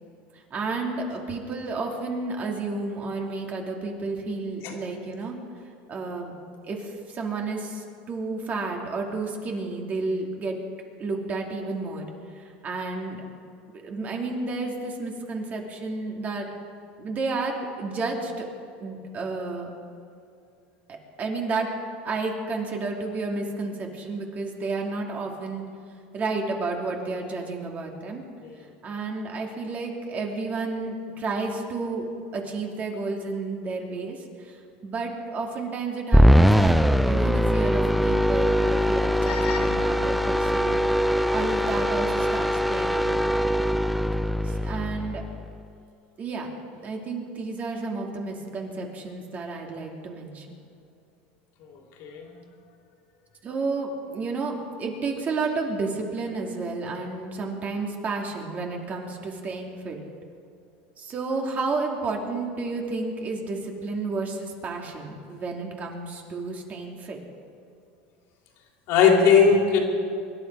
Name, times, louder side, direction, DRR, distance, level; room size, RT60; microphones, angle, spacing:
voice 1, 0.3-5.4 5.9-6.3 6.7-10.6 11.0-12.1 12.3-13.2 13.8-16.5 17.0-18.5 18.8-19.7 20.9-21.7 22.0-25.6 26.1-28.2 28.8-32.0 32.3-36.8 37.0-40.8 41.3-43.5 44.4-45.2 46.2-46.5 46.8-50.5 53.4-60.0 61.0-67.2, right 3 dB, 30° right, 1 dB, 2.6 m, -31 dB
sound 1, 36.1-45.5, equal, ahead, 0.3 m, -21 dB
voice 2, 39.2-39.6 52.0-52.3 68.9-69.8, left 6 dB, 60° left, 1 dB, 3.2 m, -18 dB
24.5 x 11.5 x 4.7 m, 2.5 s
supercardioid pair, 120°, 5 cm